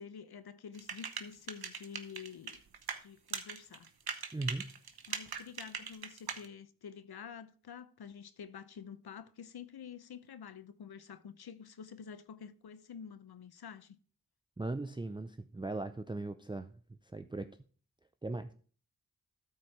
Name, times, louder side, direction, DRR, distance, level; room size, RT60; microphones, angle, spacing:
voice 1, 0.0-2.6 3.0-3.9 5.1-14.0, left 7 dB, 85° left, 0.8 m, -49 dB
sound 1, 0.8-3.0 3.3-6.5, right 6 dB, 80° right, 1.0 m, -40 dB
voice 2, 4.3-4.7 14.6-17.5 18.2-18.5, right 2 dB, 15° right, 0.5 m, -39 dB
13.0 x 4.4 x 4.8 m
cardioid pair, 45°, 37 cm